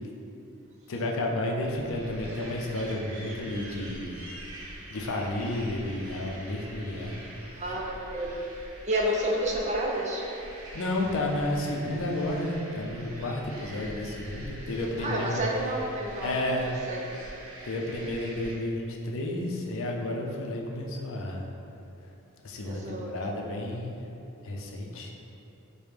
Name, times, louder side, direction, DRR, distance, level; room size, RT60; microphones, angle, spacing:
voice 1, 0.9-4.3 4.9-7.2 10.7-15.5 16.2-16.7 17.6-21.5 22.4-23.9 24.4-25.1, left 1 dB, 65° left, 0 dB, 0.4 m, -31 dB
sound 1, 1.6-18.6, right 1 dB, 75° right, 0.7 m, -44 dB
voice 2, 7.5-8.4 8.8-10.2 15.0-16.4 16.6-17.0 22.6-23.3, right 1 dB, 35° right, -2 dB, 0.5 m, -30 dB
4.9 x 2.1 x 3.2 m, 2.9 s
head